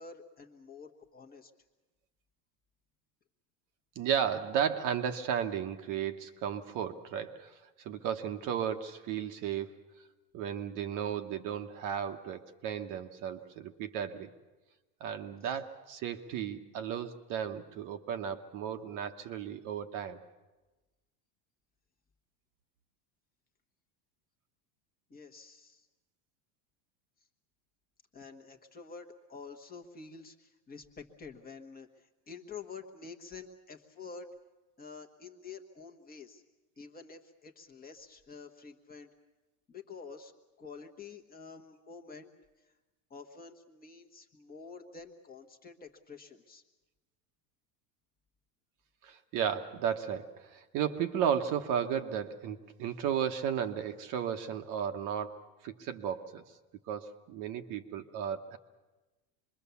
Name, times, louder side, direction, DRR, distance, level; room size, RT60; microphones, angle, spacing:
voice 1, 0.0-1.5 15.4-15.5 25.1-25.9 28.1-34.3 34.8-36.4 36.8-39.1 39.7-40.3 40.6-42.3 42.6-42.7 43.1-46.6, left 5 dB, 20° left, 3 dB, 1.2 m, -48 dB
voice 2, 4.0-7.5 7.8-9.7 10.3-14.3 15.0-20.2 49.0-56.4 56.9-58.6, right 8 dB, 40° right, 7 dB, 1.0 m, -34 dB
25.5 x 22.0 x 7.0 m, 1.1 s
supercardioid pair, 155°, 49 cm